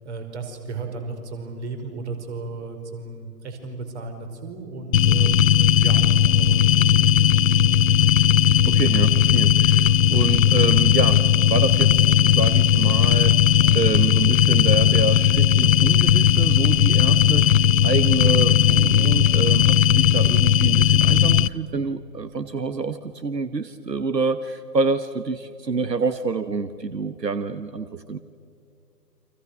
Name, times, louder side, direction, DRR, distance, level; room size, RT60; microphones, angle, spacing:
voice 1, 0.0-6.0 6.4-8.0, right 3 dB, 45° right, 5 dB, 5.1 m, -35 dB
sound 1, 4.9-21.5, left 9 dB, 55° left, 0.8 m, -17 dB
voice 2, 8.4-13.4 13.7-28.2, right 4 dB, 90° right, 12 dB, 1.2 m, -27 dB
29.5 x 26.0 x 6.7 m, 2.3 s
figure-of-eight pair, 130°, 48 cm